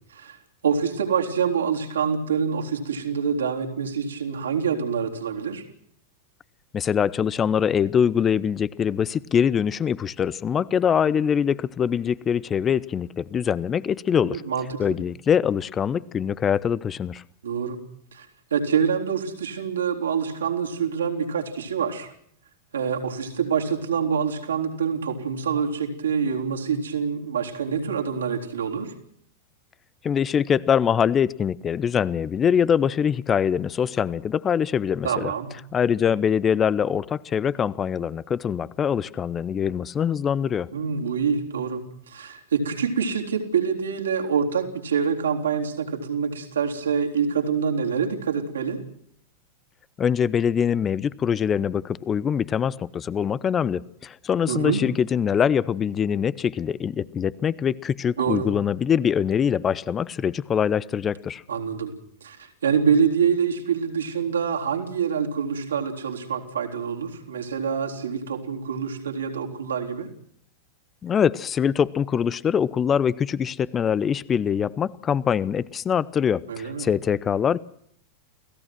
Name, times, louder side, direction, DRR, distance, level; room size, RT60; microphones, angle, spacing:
voice 1, 0.6-5.6 14.3-15.0 17.4-17.8 18.1-18.3 18.5-22.1 22.7-28.9 35.0-35.6 40.7-48.8 54.5-54.8 58.2-58.5 61.5-61.9 62.2-70.1 76.5-76.9, right 6 dB, 70° right, 3.7 m, -26 dB
voice 2, 6.7-14.4 14.8-17.2 30.0-35.3 35.7-40.7 50.0-61.4 71.0-77.6, left 8 dB, 25° left, 0.8 m, -23 dB
29.5 x 17.5 x 6.2 m
figure-of-eight pair, 90°, 0 cm